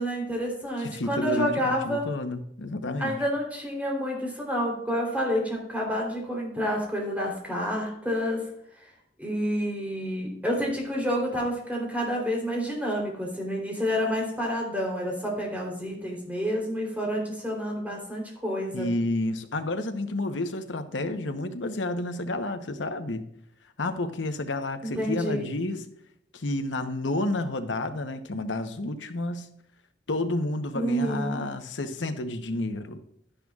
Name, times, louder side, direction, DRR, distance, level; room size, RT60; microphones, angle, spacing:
voice 1, 0.0-2.1 3.0-8.4 8.8-8.9 9.2-18.9 24.8-25.5 30.7-31.4, equal, 10° right, -2 dB, 3.3 m, -29 dB
voice 2, 0.8-3.2 18.7-23.2 23.8-25.9 26.3-29.5 30.1-33.0, left 2 dB, 90° left, 8 dB, 0.9 m, -30 dB
12.0 x 10.0 x 2.4 m, 0.75 s
head